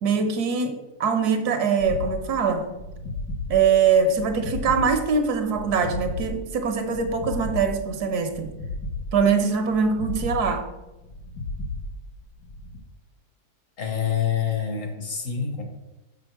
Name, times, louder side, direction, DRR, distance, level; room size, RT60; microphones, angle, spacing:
voice 1, 0.0-2.7 3.5-8.5 9.1-10.7, right 5 dB, 75° right, 6 dB, 1.4 m, -23 dB
sound 1, 1.8-12.8, left 2 dB, 90° left, 1.8 m, -34 dB
voice 2, 13.8-15.6, left 8 dB, 55° left, 3 dB, 1.6 m, -26 dB
6.3 x 6.2 x 4.6 m, 1.0 s
omnidirectional pair, 1.7 m